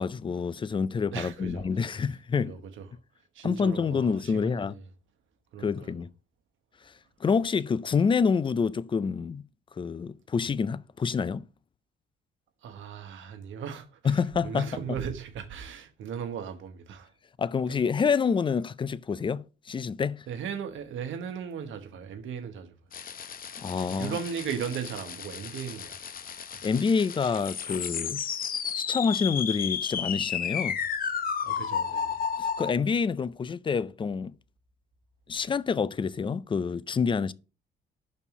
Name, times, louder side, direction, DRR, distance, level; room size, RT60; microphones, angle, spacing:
voice 1, 0.0-2.6 3.4-4.7 5.6-6.1 6.9-7.0 7.2-9.5 9.8-11.5 14.0-14.8 17.4-20.3 23.6-24.2 26.6-28.2 28.8-30.8 32.4-34.4 35.3-37.3, left 5 dB, 25° left, 0.4 m, -27 dB
voice 2, 1.1-1.8 2.4-2.9 3.3-4.8 5.5-5.9 12.6-17.1 17.6-17.8 20.3-22.8 23.9-26.0 26.5-26.6 31.4-32.3, right 7 dB, 75° right, 1.1 m, -37 dB
sound 1, 22.9-32.7, left 7 dB, 45° left, 0.7 m, -33 dB
5.4 x 4.2 x 6.0 m
cardioid pair, 90°, 20 cm